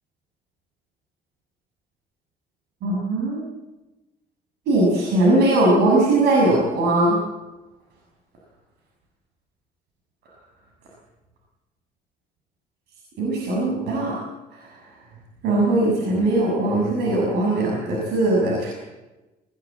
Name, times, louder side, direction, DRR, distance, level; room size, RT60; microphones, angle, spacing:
voice 1, 2.8-3.4 4.7-7.2 13.2-14.2 15.4-18.7, right 2 dB, 75° right, -2 dB, 6.9 m, -20 dB
19.5 x 19.0 x 8.6 m, 1.1 s
cardioid pair, 110°, 17 cm